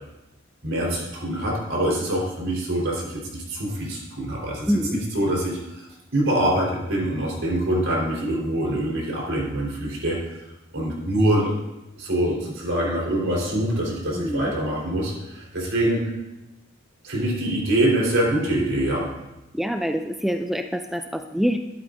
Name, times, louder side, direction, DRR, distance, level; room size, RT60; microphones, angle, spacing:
voice 1, 0.6-5.9 6.1-10.2 10.7-11.5 12.0-16.1 17.0-19.1, right 1 dB, 75° right, -3 dB, 4.1 m, -24 dB
voice 2, 4.7-5.0 14.1-14.5 19.5-21.6, equal, ahead, 6 dB, 0.3 m, -25 dB
13.5 x 11.5 x 2.6 m, 0.95 s
head